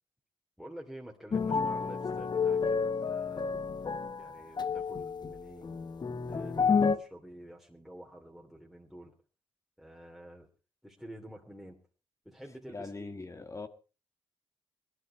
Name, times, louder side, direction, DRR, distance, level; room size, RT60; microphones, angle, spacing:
voice 1, 0.6-3.5 4.2-5.8 6.3-9.1 9.8-10.5 10.8-11.8 12.2-13.1, right 1 dB, ahead, 2.8 m, -49 dB
sound 1, 1.3-7.0, left 5 dB, 45° left, 1.1 m, -30 dB
voice 2, 12.7-13.7, left 3 dB, 30° left, 1.9 m, -41 dB
17.5 x 12.0 x 4.6 m
supercardioid pair, 55°, 10 cm